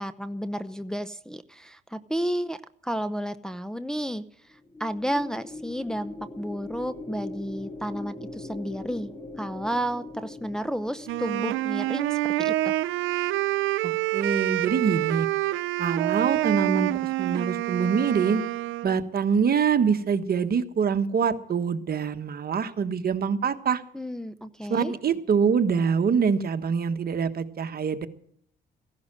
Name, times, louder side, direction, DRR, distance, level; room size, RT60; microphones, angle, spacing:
voice 1, 0.0-4.2 4.8-9.1 9.4-12.8 23.9-24.9, equal, 5° left, 10 dB, 0.7 m, -32 dB
sound 1, 4.5-13.0, left 2 dB, 20° left, 2.3 m, -41 dB
Wind instrument woodwind instrument, 11.1-19.0, right 16 dB, 90° right, 0.6 m, -27 dB
voice 2, 13.8-15.3 15.8-18.4 18.8-23.8 24.7-28.1, right 6 dB, 50° right, 9 dB, 1.5 m, -25 dB
15.5 x 11.5 x 7.6 m, 0.64 s
cardioid pair, 90°, 20 cm